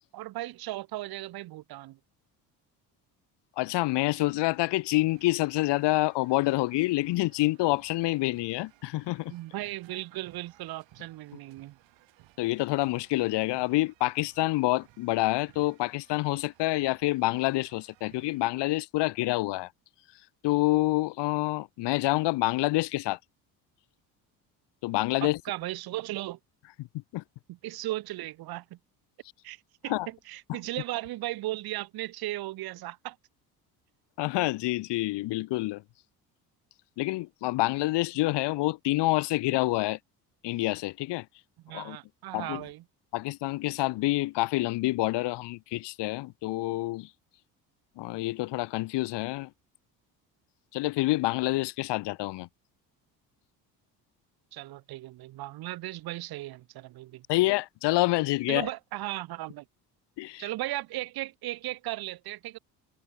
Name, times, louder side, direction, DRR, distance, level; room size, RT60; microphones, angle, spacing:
voice 1, 0.1-2.0 9.3-11.8 25.2-26.4 27.5-28.8 29.4-33.2 41.6-42.8 54.5-57.2 58.5-59.6 60.4-62.6, right 16 dB, 50° right, 0.8 m, -36 dB
voice 2, 3.6-9.3 12.4-19.7 20.4-23.2 24.8-25.4 26.8-26.9 27.1-27.2 29.9-30.1 30.5-30.6 34.2-35.8 37.0-40.0 40.4-41.3 41.7-42.0 42.3-42.6 43.1-47.1 48.0-49.5 50.7-52.5 57.3-58.7 60.2-60.5, left 19 dB, 60° left, 1.0 m, -27 dB
sound 1, 3.9-18.4, right 18 dB, 65° right, 3.6 m, -61 dB
hypercardioid pair, 60°, 48 cm